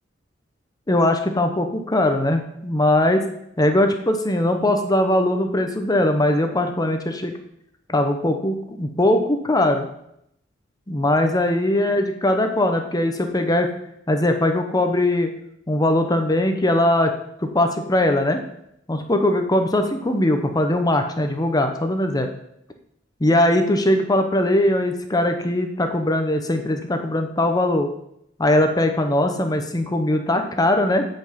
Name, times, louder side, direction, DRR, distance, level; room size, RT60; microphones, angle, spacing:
voice 1, 0.9-3.2 3.6-7.3 7.9-9.9 10.9-13.7 14.1-15.3 15.7-17.1 17.4-18.4 18.9-22.3 23.2-27.9 28.4-31.1, left 1 dB, 20° left, 6 dB, 0.9 m, -20 dB
9.6 x 5.4 x 7.4 m, 0.75 s
head